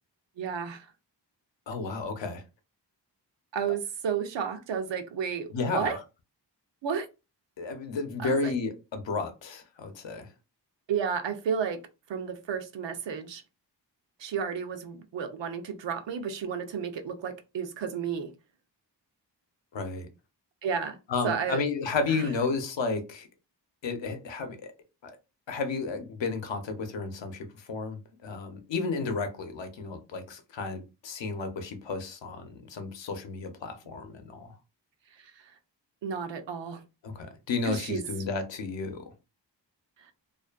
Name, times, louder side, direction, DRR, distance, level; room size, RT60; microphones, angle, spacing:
voice 1, 0.4-0.9 3.5-6.0 6.8-7.1 8.2-8.5 10.9-11.8 12.1-13.4 14.2-18.3 20.6-21.0 21.2-21.6 22.1-22.2 36.0-36.8 37.7-38.0, right 7 dB, 80° right, 0.6 m, -32 dB
voice 2, 1.7-2.4 5.5-6.0 7.6-10.3 19.7-20.1 21.1-23.3 23.8-24.7 25.0-25.2 25.5-34.5 37.0-39.1, left 4 dB, 85° left, 0.7 m, -32 dB
2.4 x 2.4 x 2.3 m
wide cardioid pair, 80°, 43 cm